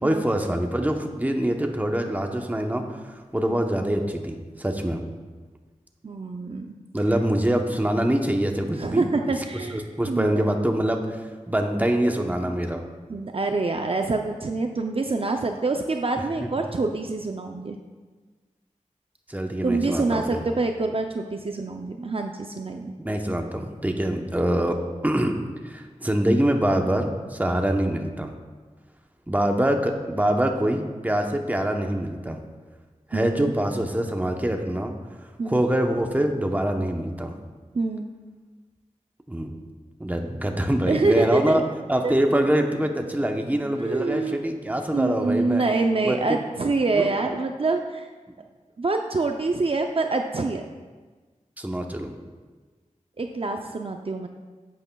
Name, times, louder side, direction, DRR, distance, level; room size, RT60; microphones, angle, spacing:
voice 1, 0.0-2.8 3.3-5.0 6.9-9.0 9.7-11.2 11.5-12.8 19.3-20.5 23.0-25.4 25.6-28.3 29.3-32.4 33.1-34.9 35.5-37.4 39.3-39.5 40.0-41.6 41.9-45.6 46.0-46.2 46.9-47.1 51.6-52.1, right 1 dB, 10° right, 3 dB, 0.9 m, -24 dB
voice 2, 6.0-6.8 8.7-10.6 13.1-17.8 19.6-22.9 33.1-33.5 35.4-35.6 37.7-38.1 40.9-41.6 42.0-42.1 43.8-44.4 44.9-48.1 48.8-50.6 53.2-54.3, right 3 dB, 45° right, 4 dB, 0.5 m, -26 dB
11.0 x 8.3 x 2.3 m, 1.4 s
wide cardioid pair, 55°, 13 cm